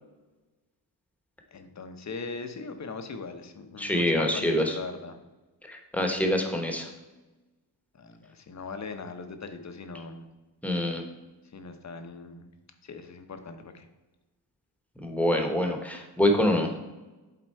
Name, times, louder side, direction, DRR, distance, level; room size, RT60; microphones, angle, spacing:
voice 1, 1.5-5.2 8.0-10.3 11.5-12.5 12.8-13.9, left 4 dB, 35° left, 8 dB, 0.7 m, -40 dB
voice 2, 3.8-4.8 5.7-6.9 10.6-11.0 15.0-16.7, left 1 dB, 5° left, 3 dB, 1.0 m, -25 dB
7.7 x 3.7 x 4.5 m, 1.1 s
cardioid pair, 100°, 46 cm